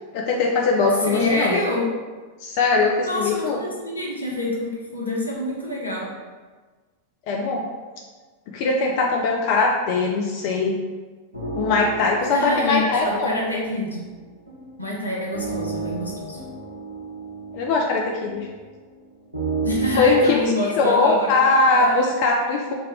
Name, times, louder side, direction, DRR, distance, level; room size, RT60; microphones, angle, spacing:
voice 1, 0.1-1.6 2.4-3.6 7.3-7.6 8.5-10.8 11.5-13.3 17.5-18.5 20.0-22.7, left 3 dB, 45° left, -1 dB, 0.3 m, -21 dB
voice 2, 1.0-1.8 3.0-6.1 12.3-14.1 14.8-16.4 19.6-22.1, left 1 dB, 85° left, -3 dB, 0.7 m, -26 dB
sound 1, 11.3-20.3, right 4 dB, 80° right, 0.7 m, -33 dB
3.4 x 2.2 x 3.3 m, 1.4 s
figure-of-eight pair, 90°, 0 cm